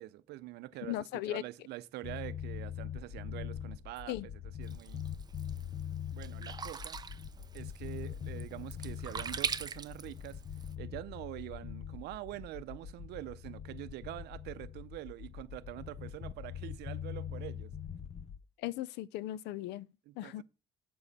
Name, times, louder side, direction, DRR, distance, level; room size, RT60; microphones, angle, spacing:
voice 1, 0.0-1.0 1.2-4.2 4.6-5.0 6.1-7.0 7.5-10.4 10.8-17.7 20.1-20.4, right 16 dB, 80° right, 0.6 m, -45 dB
voice 2, 0.8-1.4 4.1-4.3 18.6-20.4, left 15 dB, 85° left, 0.5 m, -38 dB
sound 1, 2.0-18.4, left 9 dB, 40° left, 0.8 m, -43 dB
Sink (filling or washing), 4.6-10.7, right 5 dB, 25° right, 0.6 m, -42 dB
7.6 x 7.0 x 4.1 m
cardioid pair, 110°, 17 cm